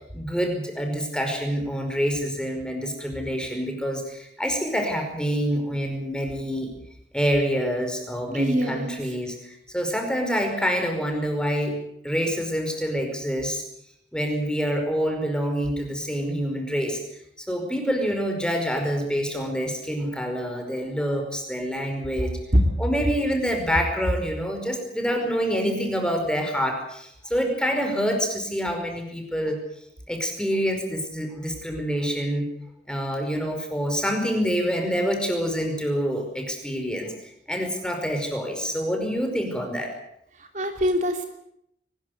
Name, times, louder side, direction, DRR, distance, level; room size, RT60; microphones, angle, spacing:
voice 1, 0.1-6.7 7.1-11.8 12.0-13.6 14.1-17.0 17.4-22.3 22.8-29.6 30.1-32.5 32.9-37.1 37.5-39.9, equal, 5° left, 4 dB, 5.1 m, -26 dB
voice 2, 8.3-9.0 40.4-41.3, equal, 45° right, 4 dB, 3.2 m, -25 dB
23.5 x 20.0 x 8.0 m, 0.74 s
head